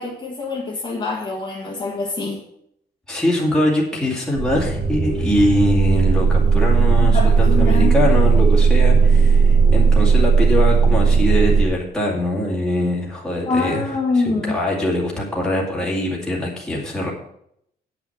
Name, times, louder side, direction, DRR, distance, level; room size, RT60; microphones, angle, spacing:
voice 1, 0.0-2.4 7.1-8.0 13.5-14.6, left 3 dB, 25° left, -5 dB, 1.7 m, -24 dB
voice 2, 3.1-13.8 14.2-17.1, left 1 dB, 5° left, -4 dB, 2.2 m, -22 dB
sound 1, 4.4-11.6, right 5 dB, 45° right, 1.6 m, -15 dB
9.4 x 6.1 x 7.2 m, 0.74 s
cardioid pair, 175°, 17 cm